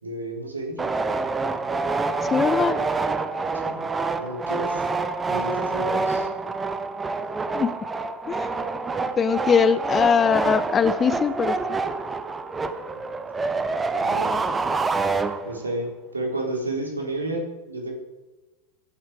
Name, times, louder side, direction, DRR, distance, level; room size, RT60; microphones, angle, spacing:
voice 1, 0.0-0.8 3.6-3.8 4.2-4.8 5.3-6.3 14.0-14.4 15.4-17.9, right 2 dB, 75° right, 1 dB, 4.1 m, -31 dB
sound 1, 0.8-15.8, right 3 dB, 15° right, 1.1 m, -27 dB
voice 2, 2.3-2.8 7.5-7.7 8.3-8.5 9.2-11.6, left 6 dB, 20° left, 16 dB, 0.7 m, -21 dB
21.5 x 12.0 x 4.9 m, 1.1 s
figure-of-eight pair, 90°, 0 cm